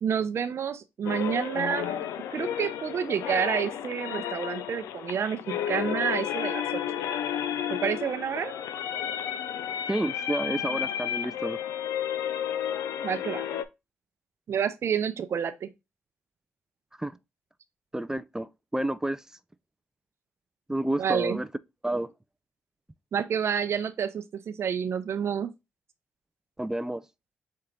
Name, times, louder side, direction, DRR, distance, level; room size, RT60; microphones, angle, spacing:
voice 1, 0.0-2.1 2.3-6.6 7.7-8.6 13.0-13.5 14.5-15.7 21.0-21.4 23.1-25.5, right 7 dB, 55° right, 0.6 m, -29 dB
sound 1, 1.0-13.6, left 10 dB, 80° left, 0.4 m, -32 dB
voice 2, 9.9-11.6 17.0-17.2 17.9-19.4 20.7-21.5 21.8-22.1 26.6-27.1, right 1 dB, 10° right, 0.3 m, -30 dB
4.5 x 2.8 x 3.7 m
supercardioid pair, 55°, 5 cm